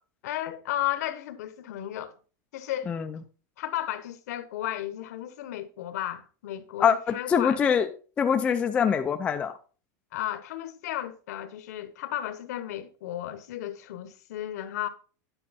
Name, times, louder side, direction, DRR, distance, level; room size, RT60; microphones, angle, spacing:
voice 1, 0.2-2.2 2.5-2.9 3.6-7.6 10.1-14.9, left 12 dB, 65° left, 1.0 m, -34 dB
voice 2, 6.8-7.9 8.2-9.5, left 7 dB, 10° left, 0.4 m, -24 dB
10.0 x 6.5 x 4.2 m
supercardioid pair, 180°, 9 cm